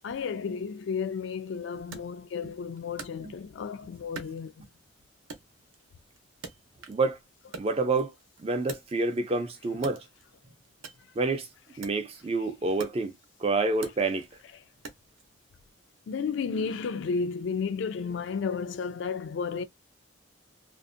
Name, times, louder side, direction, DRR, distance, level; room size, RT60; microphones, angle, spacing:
voice 1, 0.0-4.7 14.5-14.6 16.1-19.6, left 5 dB, 60° left, 0.3 m, -32 dB
Wood, 1.9-3.7 4.1-4.9 5.3-7.1 7.4-9.3 9.7-15.3, right 4 dB, 70° right, 0.6 m, -46 dB
voice 2, 7.6-8.1 8.4-10.0 11.2-11.5 11.8-13.1 13.4-14.3, right 3 dB, 30° right, 0.3 m, -28 dB
2.5 x 2.1 x 2.5 m
head